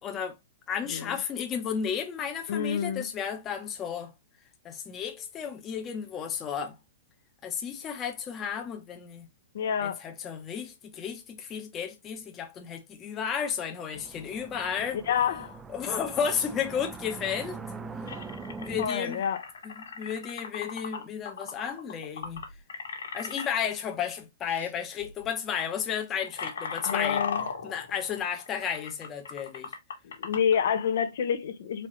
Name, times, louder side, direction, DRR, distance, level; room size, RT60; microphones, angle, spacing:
voice 1, 0.0-0.3 0.7-4.1 4.6-6.8 7.4-9.3 9.8-15.0 15.7-17.6 18.6-19.2 19.6-22.4 23.1-27.2 27.6-29.7, left 7 dB, 20° left, 0.9 m, -33 dB
voice 2, 2.5-3.1 9.5-10.0 15.1-15.6 18.8-19.4 26.9-27.4 30.0-31.9, left 8 dB, 65° left, 0.8 m, -28 dB
sound 1, 13.9-18.9, right 4 dB, 15° right, 0.4 m, -42 dB
sound 2, 18.1-23.5 24.5-24.7 25.0-25.3 25.8-30.6, left 6 dB, 85° left, 1.5 m, -37 dB
4.2 x 3.0 x 3.2 m
hypercardioid pair, 150°, 0 cm